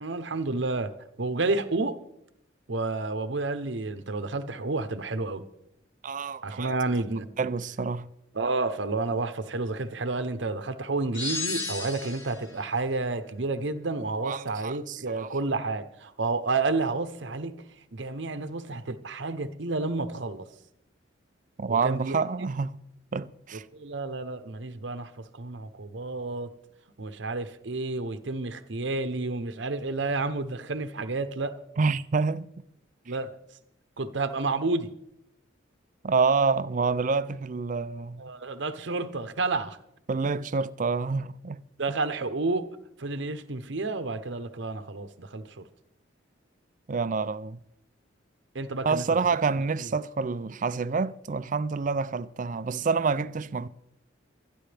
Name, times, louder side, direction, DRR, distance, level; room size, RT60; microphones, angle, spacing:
voice 1, 0.0-0.9 1.2-2.0 2.7-5.4 6.4-7.3 8.3-17.6 17.9-20.4 21.7-22.2 23.7-26.5 27.0-31.6 33.1-33.3 34.0-34.9 38.2-39.8 41.8-42.7 43.0-45.6 48.5-49.0 49.8-49.9, right 3 dB, 65° right, 0.8 m, -30 dB
voice 2, 6.0-6.7 7.4-8.1 14.2-15.3 21.6-22.8 23.1-23.6 31.8-32.5 36.0-38.2 40.1-41.6 46.9-47.6 48.8-53.7, right 4 dB, 40° right, 0.4 m, -27 dB
sound 1, 11.1-12.5, left 3 dB, 65° left, 2.0 m, -33 dB
24.0 x 10.0 x 3.4 m
head